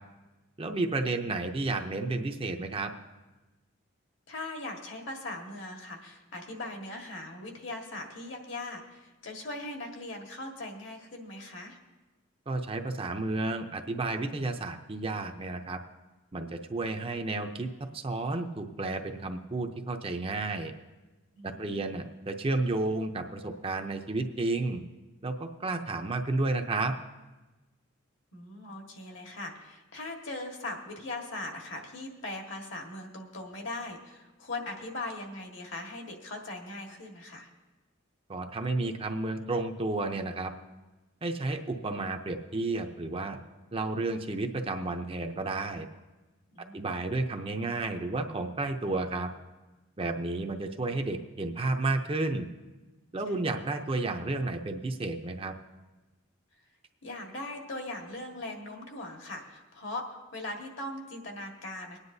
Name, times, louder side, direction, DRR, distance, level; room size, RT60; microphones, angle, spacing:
voice 1, 0.6-2.9 12.5-15.8 16.3-20.7 21.4-24.8 25.2-27.0 38.3-40.5 41.2-43.4 43.7-45.9 46.7-49.3 50.0-52.5 53.1-55.5, right 2 dB, 25° right, 5 dB, 0.6 m, -32 dB
voice 2, 4.3-11.8 21.4-21.9 28.3-37.5 46.5-46.8 53.3-53.4 57.0-62.0, left 2 dB, 65° left, 2 dB, 1.7 m, -40 dB
24.0 x 9.7 x 2.7 m, 1.1 s
head